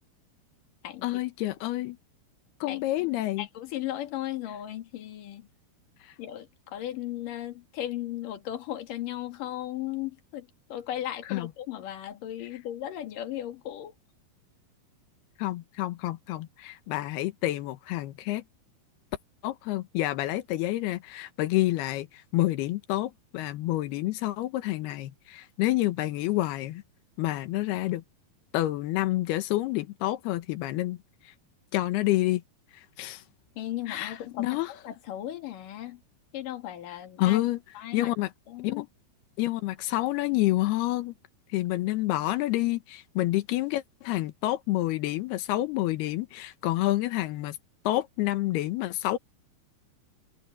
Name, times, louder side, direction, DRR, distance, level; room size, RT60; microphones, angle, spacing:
voice 1, 1.0-2.0 2.6-3.5 6.0-6.1 11.3-11.5 15.4-18.4 19.4-26.8 27.2-28.0 28.5-31.0 31.2-31.3 31.7-32.4 32.7-33.2 33.9-34.7 37.2-37.6 37.9-38.3 38.6-38.8 39.4-41.1 41.5-47.6 47.8-49.2, left 16 dB, 90° left, 3.1 m, -28 dB
voice 2, 2.7-3.1 3.4-5.5 6.2-13.9 33.6-36.0 36.3-37.4 37.8-38.1 38.5-38.9, left 12 dB, 60° left, 3.5 m, -36 dB
omnidirectional pair, 4.5 m